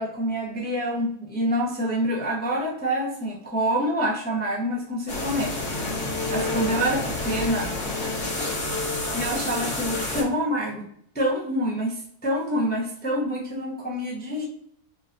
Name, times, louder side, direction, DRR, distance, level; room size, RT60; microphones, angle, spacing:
voice 1, 0.0-5.5 6.3-7.7 9.1-10.8 11.1-14.4, equal, 15° left, -2 dB, 0.4 m, -26 dB
sound 1, 5.1-10.2, left 2 dB, 55° left, 1.8 m, -28 dB
4.7 x 2.6 x 2.5 m, 0.66 s
omnidirectional pair, 1.7 m